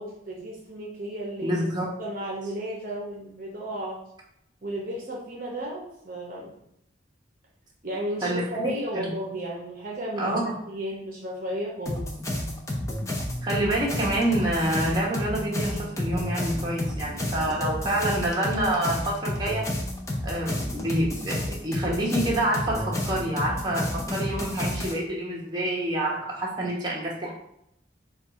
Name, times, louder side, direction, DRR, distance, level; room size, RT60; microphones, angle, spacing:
voice 1, 0.0-1.7 2.0-4.0 4.6-6.5 7.8-12.1 17.4-18.0, right 1 dB, 45° right, -3 dB, 0.8 m, -34 dB
voice 2, 1.4-1.9 8.2-9.0 10.2-10.5 13.4-19.7 20.2-27.3, right 1 dB, 20° right, -4 dB, 1.0 m, -27 dB
sound 1, 11.9-24.9, left 1 dB, 15° left, 0.6 m, -31 dB
4.5 x 2.4 x 4.5 m, 0.75 s
head